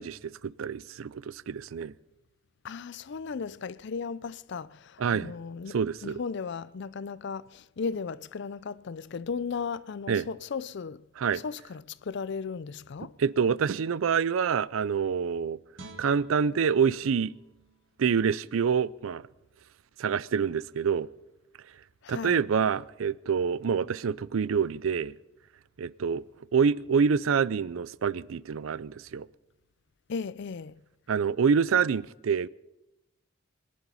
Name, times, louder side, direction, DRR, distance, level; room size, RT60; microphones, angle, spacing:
voice 1, 0.0-1.9 5.0-5.3 5.7-6.2 10.1-10.3 11.2-11.4 13.2-15.6 16.0-17.3 18.0-19.2 20.0-21.1 22.1-25.1 25.8-26.2 26.5-29.3 31.1-32.5, right 6 dB, 80° right, 0.4 m, -26 dB
voice 2, 2.6-11.1 11.3-13.2 22.0-22.5 30.1-30.8, left 5 dB, 60° left, 0.4 m, -36 dB
Guitar, 15.7-18.9 19.3-19.5, right 2 dB, 65° right, 1.7 m, -53 dB
22.0 x 10.5 x 5.5 m
head